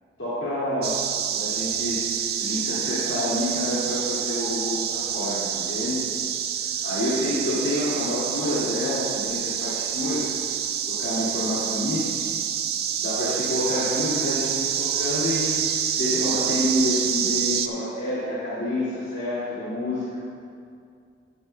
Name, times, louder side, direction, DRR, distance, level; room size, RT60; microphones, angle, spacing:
voice 1, 0.2-1.0 1.3-6.0 6.8-10.3 10.9-12.2 13.0-20.1, left 1 dB, 70° left, -11 dB, 2.2 m, -28 dB
sound 1, 0.8-17.7, right 9 dB, 55° right, 0.4 m, -27 dB
12.5 x 10.5 x 2.3 m, 2.3 s
head